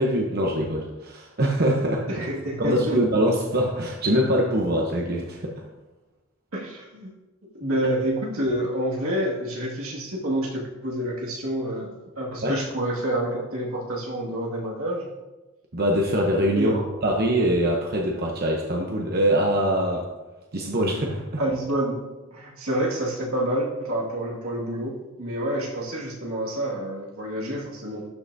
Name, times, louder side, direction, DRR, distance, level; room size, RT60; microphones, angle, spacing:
voice 1, 0.0-2.2 2.6-5.6 12.4-12.5 15.7-16.7 17.0-20.1 20.5-21.2, equal, 50° right, 0 dB, 0.9 m, -23 dB
voice 2, 2.1-3.0 6.5-7.1 7.5-15.1 16.5-16.9 21.4-22.1 22.3-28.1, right 1 dB, 85° right, -3 dB, 2.1 m, -28 dB
12.0 x 5.7 x 2.7 m, 1.1 s
head